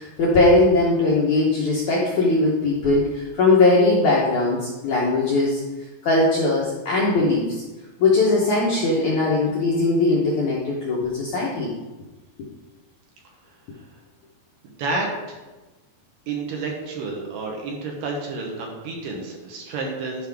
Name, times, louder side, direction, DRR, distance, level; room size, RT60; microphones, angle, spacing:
voice 1, 0.0-5.6 6.0-7.6 8.0-11.7, left 2 dB, 65° left, -5 dB, 2.0 m, -20 dB
voice 2, 14.6-15.4 16.3-20.3, right 3 dB, 70° right, 1 dB, 2.4 m, -30 dB
11.5 x 5.7 x 3.5 m, 1.2 s
omnidirectional pair, 4.7 m